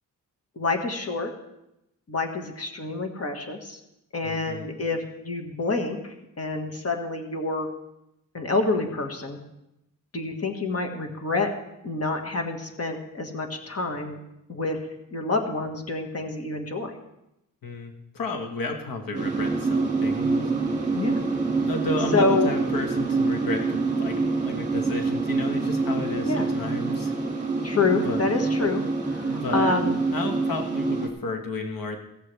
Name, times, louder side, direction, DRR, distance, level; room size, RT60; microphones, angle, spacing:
voice 1, 0.5-1.3 2.1-3.8 4.1-7.7 8.3-9.4 10.1-11.5 11.8-14.2 14.5-14.8 15.1-16.9 20.9-21.3 22.1-22.5 26.2-26.5 27.6-28.8 29.1-29.9, left 3 dB, 45° left, 4 dB, 1.7 m, -27 dB
voice 2, 4.2-4.8 17.6-20.5 21.7-27.1 28.0-28.2 29.3-29.8 30.1-32.0, left 3 dB, 85° left, 4 dB, 1.5 m, -33 dB
sound 1, 19.1-31.1, right 3 dB, 20° right, 2.2 m, -26 dB
17.0 x 14.5 x 3.4 m, 0.86 s
wide cardioid pair, 125°, 33 cm